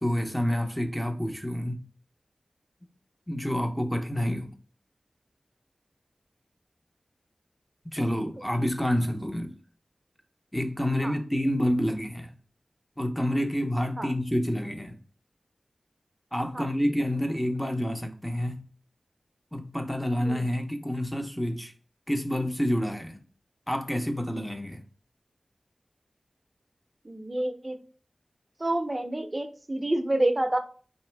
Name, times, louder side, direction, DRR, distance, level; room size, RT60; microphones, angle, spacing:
voice 1, 0.0-1.8 3.3-4.5 7.9-9.5 10.5-12.3 13.0-15.0 16.3-18.7 19.5-21.7 22.1-23.2 23.7-24.8, equal, 10° left, 0.8 m, -28 dB
voice 2, 27.0-27.8 28.6-30.6, right 1 dB, 35° right, 0.6 m, -28 dB
4.1 x 3.0 x 3.3 m
wide cardioid pair, 50°, 0 cm